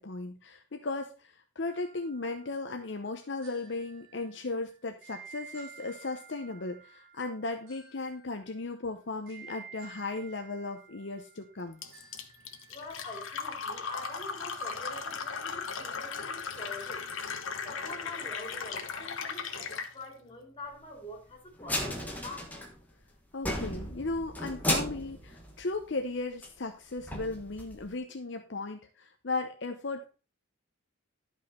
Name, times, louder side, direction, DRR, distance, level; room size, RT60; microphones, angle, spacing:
voice 1, 0.0-11.8 23.3-30.0, left 3 dB, 60° left, 0.8 m, -36 dB
sound 1, 1.7-12.9, right 6 dB, 45° right, 5.7 m, -53 dB
Fill (with liquid), 11.8-19.9, left 5 dB, 75° left, 1.2 m, -37 dB
voice 2, 12.7-17.1 17.6-22.5, left 2 dB, 25° left, 3.0 m, -45 dB
sound 2, 21.6-23.0 23.3-26.1 26.4-26.5 27.0-27.9, left 1 dB, 10° left, 1.3 m, -34 dB
11.5 x 5.5 x 4.2 m
head